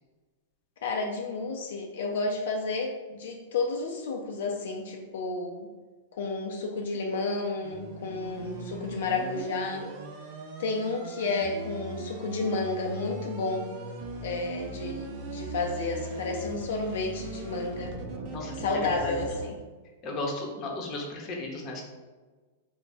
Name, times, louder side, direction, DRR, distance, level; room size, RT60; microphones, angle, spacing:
voice 1, 0.8-5.7 6.2-9.9 10.6-13.7 14.2-17.9 18.6-19.6, left 3 dB, 75° left, 1 dB, 0.5 m, -31 dB
sound 1, 7.6-19.5, right 2 dB, 50° right, 0.6 m, -39 dB
voice 2, 20.0-21.8, left 2 dB, 35° left, 0 dB, 0.8 m, -34 dB
3.4 x 2.1 x 4.1 m, 1.3 s
hypercardioid pair, 135°, 0 cm